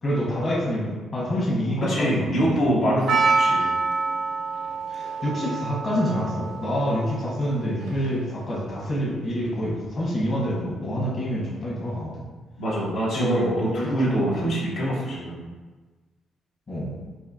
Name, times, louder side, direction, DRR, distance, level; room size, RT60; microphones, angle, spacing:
voice 1, 0.0-2.5 4.9-12.1 13.1-14.3 16.7-17.0, equal, 40° left, -6 dB, 1.2 m, -27 dB
voice 2, 1.8-3.7 12.6-15.4, right 1 dB, 85° left, -8 dB, 1.1 m, -24 dB
Percussion, 3.1-8.3, right 4 dB, 90° right, 0.5 m, -27 dB
4.1 x 2.9 x 2.6 m, 1.3 s
cardioid pair, 90°, 0 cm